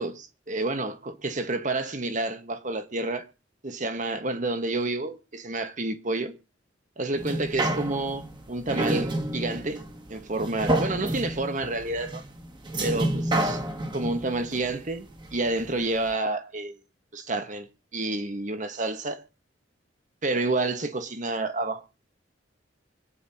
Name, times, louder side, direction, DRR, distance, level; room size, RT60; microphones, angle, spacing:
voice 1, 0.0-3.3 3.6-6.3 7.0-9.8 10.1-12.2 12.8-13.6 13.9-16.7 17.1-17.7 17.9-19.2 20.2-21.8, right 2 dB, 45° right, 1.5 m, -29 dB
sound 1, 7.1-15.7 16.1-16.2, right 1 dB, 25° right, 2.0 m, -29 dB
25.0 x 9.7 x 2.9 m
head